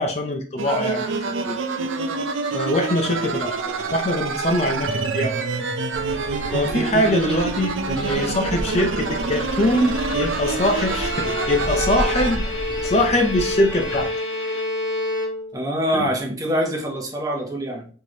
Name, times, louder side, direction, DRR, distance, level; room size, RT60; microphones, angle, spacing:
voice 1, 0.0-1.6 2.5-5.5 6.5-12.5 12.8-14.1 15.9-16.1, left 1 dB, 35° left, 0.5 m, -23 dB
sound 1, 0.6-12.4, right 4 dB, 75° right, 0.5 m, -27 dB
sound 2, 5.9-14.1, equal, 5° left, 1.5 m, -32 dB
Bowed string instrument, 8.8-15.7, left 2 dB, 60° left, 1.3 m, -29 dB
voice 2, 15.5-17.9, equal, 20° right, 0.8 m, -25 dB
4.5 x 3.2 x 2.8 m
head